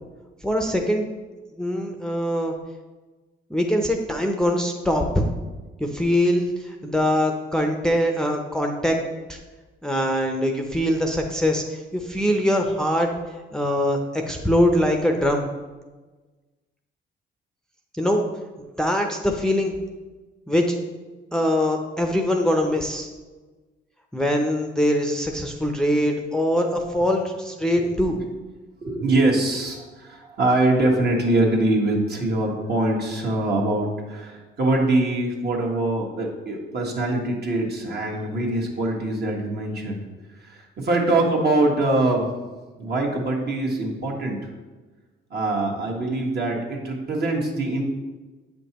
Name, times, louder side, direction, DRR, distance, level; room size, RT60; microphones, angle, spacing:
voice 1, 0.4-1.1 1.6-2.5 3.5-5.3 5.8-9.0 9.3-9.4 9.8-13.1 13.5-15.5 18.0-18.2 18.8-19.7 20.5-20.7 21.3-23.1 24.1-28.2, equal, 5° left, 2 dB, 0.6 m, -22 dB
voice 2, 28.8-40.0 40.4-42.3 42.8-44.5 45.3-47.8, right 2 dB, 55° right, -1 dB, 1.4 m, -23 dB
8.0 x 5.2 x 2.9 m, 1.3 s
cardioid pair, 90°, 20 cm